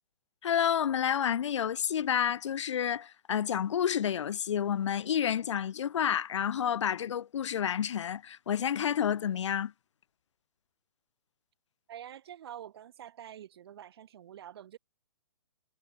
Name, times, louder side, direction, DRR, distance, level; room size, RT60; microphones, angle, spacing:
voice 1, 0.4-9.7, left 9 dB, 60° left, 0.7 m, -29 dB
voice 2, 11.9-14.8, right 10 dB, 50° right, 3.9 m, -47 dB
hypercardioid pair, 155°, 17 cm